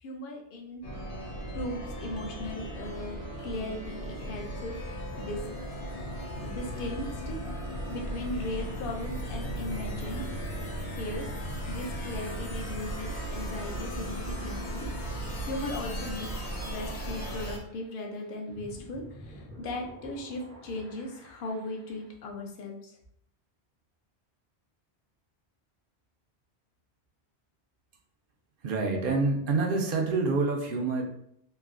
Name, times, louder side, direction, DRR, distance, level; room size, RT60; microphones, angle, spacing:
voice 1, 0.0-0.9 1.5-3.2 3.4-5.4 6.4-7.4 7.9-10.2 10.9-11.3 11.7-14.9 15.4-16.3 16.7-22.9, left 1 dB, 60° left, 1 dB, 0.7 m, -37 dB
sound 1, 0.8-17.6, equal, 85° left, 1.0 m, -36 dB
sound 2, 15.7-22.1, equal, 5° left, 0.4 m, -52 dB
voice 2, 28.6-31.0, right 3 dB, 60° right, 2 dB, 0.7 m, -27 dB
3.1 x 2.6 x 2.4 m, 0.71 s
omnidirectional pair, 1.1 m